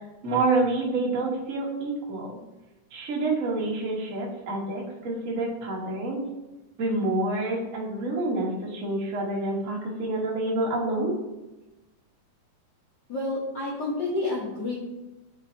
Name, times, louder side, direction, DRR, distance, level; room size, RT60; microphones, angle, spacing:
voice 1, 0.2-2.4 2.9-6.2 6.8-11.1, right 2 dB, 70° right, -3 dB, 0.7 m, -28 dB
voice 2, 13.1-14.8, left 2 dB, 70° left, -6 dB, 1.0 m, -29 dB
9.0 x 4.1 x 2.7 m, 1.0 s
omnidirectional pair, 3.4 m